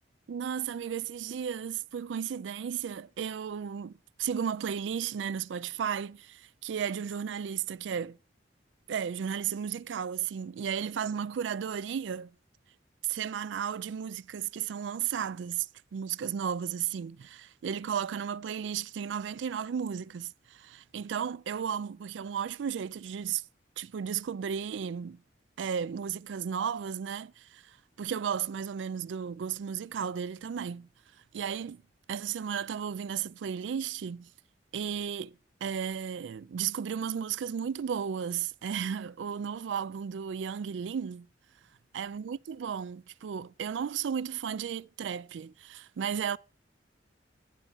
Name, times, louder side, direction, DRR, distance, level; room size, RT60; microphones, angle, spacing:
voice 1, 0.3-8.2 8.9-12.3 13.0-23.4 23.8-25.2 25.6-30.9 31.3-31.8 32.1-34.3 34.7-35.4 35.6-41.3 41.9-46.4, right 7 dB, 75° right, 0.4 m, -34 dB
11.5 x 4.6 x 5.5 m
head